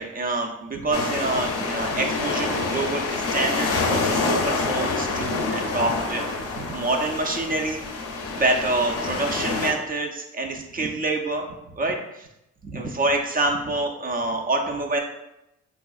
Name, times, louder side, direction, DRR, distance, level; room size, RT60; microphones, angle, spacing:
voice 1, 0.0-7.8 8.3-11.5 11.7-12.0 12.6-15.0, right 2 dB, 30° right, 2 dB, 0.4 m, -26 dB
sound 1, 0.9-9.7, left 3 dB, 50° left, 0.6 m, -27 dB
3.6 x 2.4 x 2.3 m, 0.86 s
cardioid pair, 90°, 30 cm